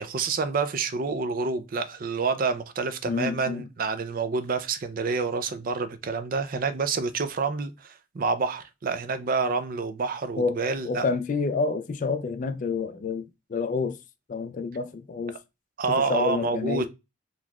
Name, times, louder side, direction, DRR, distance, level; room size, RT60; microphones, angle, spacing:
voice 1, 0.0-11.1 15.8-16.9, right 4 dB, 45° right, 0.4 m, -28 dB
voice 2, 3.1-3.7 10.4-14.0 14.3-15.4 15.9-16.9, left 4 dB, 40° left, 0.3 m, -28 dB
4.1 x 2.9 x 2.3 m
head